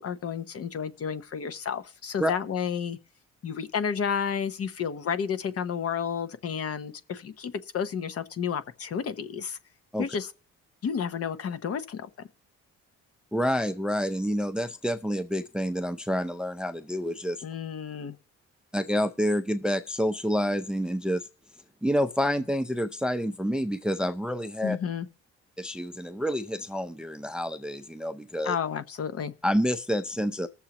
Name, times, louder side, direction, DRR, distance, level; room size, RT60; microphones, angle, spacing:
voice 1, 0.0-3.0 3.4-9.6 10.0-10.3 10.8-12.1 17.4-18.2 24.6-25.1 28.4-29.3, left 7 dB, 50° left, 0.8 m, -31 dB
voice 2, 13.3-17.4 18.7-21.2 21.8-24.8 25.6-28.6 29.4-30.5, equal, 5° right, 0.5 m, -28 dB
20.5 x 7.1 x 2.9 m
cardioid pair, 90°, 30 cm